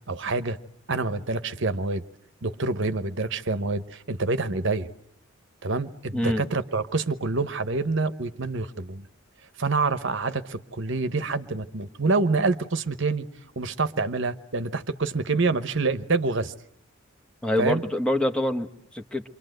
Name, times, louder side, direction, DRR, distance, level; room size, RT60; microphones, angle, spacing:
voice 1, 0.1-0.6 0.9-2.0 2.4-4.9 5.6-9.0 9.6-13.3 13.6-16.5 17.6-17.8, right 3 dB, 60° right, 11 dB, 1.0 m, -26 dB
voice 2, 6.1-6.5 17.4-19.2, left 1 dB, 5° left, 5 dB, 1.1 m, -26 dB
28.5 x 24.5 x 7.9 m, 0.69 s
head